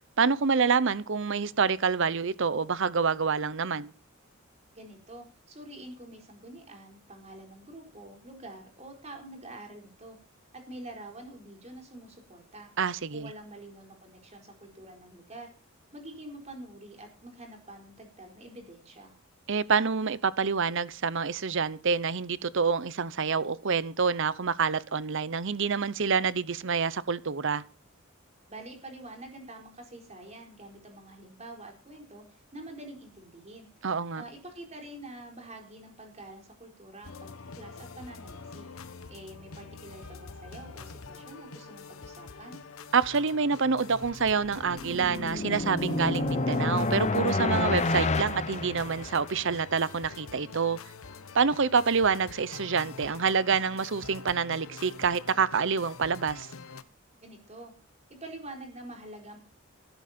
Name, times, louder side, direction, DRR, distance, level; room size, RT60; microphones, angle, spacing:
voice 1, 0.2-3.9 12.8-13.3 19.5-27.6 33.8-34.2 42.9-50.8 51.3-56.5, right 5 dB, 60° right, 0.8 m, -27 dB
voice 2, 4.7-10.2 10.5-12.7 13.1-15.5 15.9-19.1 28.5-33.7 34.1-38.7 39.1-42.6 57.2-57.7 58.2-59.4, right 1 dB, 35° right, 4.3 m, -46 dB
sound 1, 37.0-56.8, left 4 dB, 85° left, 1.1 m, -46 dB
sound 2, 44.2-49.4, left 3 dB, 35° left, 0.8 m, -29 dB
14.5 x 12.5 x 4.4 m
head